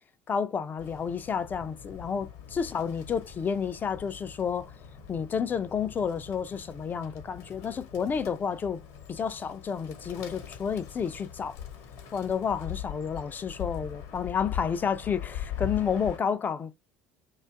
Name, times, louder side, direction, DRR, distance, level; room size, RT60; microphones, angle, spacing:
voice 1, 0.3-4.7 5.1-8.8 9.1-11.6 12.1-16.8, left 6 dB, 30° left, 0.4 m, -30 dB
Bird, 0.8-16.2, left 9 dB, 60° left, 0.7 m, -41 dB
2.5 x 2.2 x 2.4 m
figure-of-eight pair, 65°, 7 cm